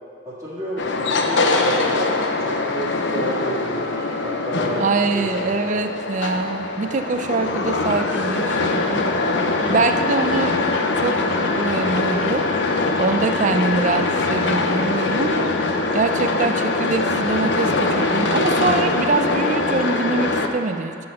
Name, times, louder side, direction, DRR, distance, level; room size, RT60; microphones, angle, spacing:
voice 1, 0.2-4.0 4.2-4.8 5.1-5.8, equal, 15° right, -9 dB, 1.8 m, -30 dB
sound 1, 0.8-20.5, left 3 dB, 75° left, 0.6 m, -22 dB
voice 2, 4.8-9.1 9.7-10.6 11.0-11.2 11.5-12.4 13.0-15.5 15.9-21.0, right 3 dB, 40° right, 8 dB, 0.4 m, -24 dB
7.9 x 5.4 x 6.6 m, 2.5 s
head